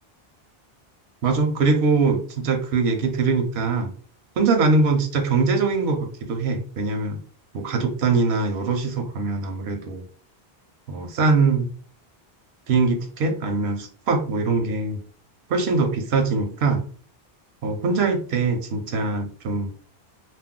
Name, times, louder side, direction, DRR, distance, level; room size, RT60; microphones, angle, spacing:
voice 1, 1.2-3.9 4.4-7.2 7.5-10.0 10.9-11.7 12.7-15.0 15.5-16.8 17.6-19.7, right 4 dB, 85° right, 6 dB, 0.9 m, -22 dB
2.5 x 2.0 x 3.6 m, 0.42 s
omnidirectional pair, 1.0 m